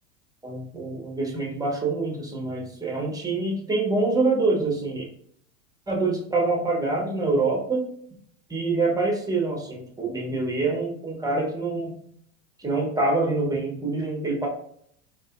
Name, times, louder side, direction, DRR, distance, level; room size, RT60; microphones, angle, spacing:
voice 1, 0.4-5.0 5.9-7.9 8.5-12.0 12.6-14.5, right 3 dB, 10° right, -1 dB, 1.0 m, -25 dB
4.0 x 2.7 x 2.4 m, 0.65 s
hypercardioid pair, 90°, 42 cm